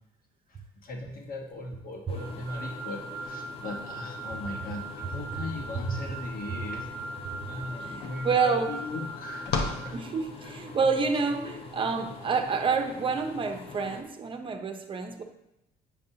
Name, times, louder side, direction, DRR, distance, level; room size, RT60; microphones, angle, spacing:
voice 1, 0.5-6.9 7.1-10.0 10.4-10.5 10.8-10.9 11.4-11.6, left 2 dB, 60° left, 1 dB, 1.3 m, -39 dB
sound 1, 2.1-14.0, left 3 dB, 35° left, 0.8 m, -44 dB
sound 2, 2.2-9.9, right 2 dB, 90° right, 0.6 m, -40 dB
sound 3, 7.7-10.8, left 4 dB, 80° left, 0.9 m, -35 dB
voice 2, 7.8-8.8 9.9-15.2, right 5 dB, 30° right, 6 dB, 0.7 m, -28 dB
8.5 x 5.3 x 2.8 m, 0.88 s
cardioid pair, 110°, 17 cm